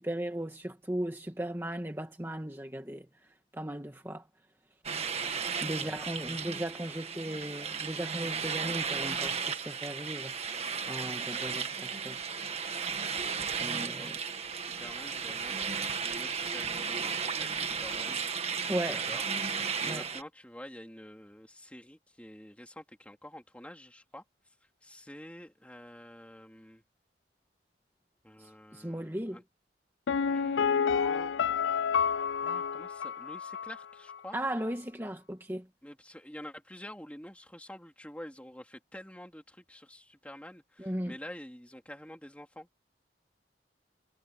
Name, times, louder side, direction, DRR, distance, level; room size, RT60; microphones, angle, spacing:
voice 1, 0.0-3.1 3.5-4.3 5.6-12.2 13.6-14.2 18.7-19.0 19.8-20.0 28.4-29.4 34.3-35.6 40.8-41.1, right 1 dB, 15° right, 1.7 m, -37 dB
sound 1, 4.8-20.2, right 6 dB, 35° right, 1.8 m, -34 dB
voice 2, 6.3-6.9 13.9-14.2 14.5-19.2 19.8-24.2 24.8-26.8 28.2-29.4 30.2-31.4 32.4-34.4 35.8-42.7, left 1 dB, 5° left, 3.0 m, -48 dB
Piano, 30.1-33.8 34.1-34.2, left 6 dB, 80° left, 0.4 m, -29 dB
head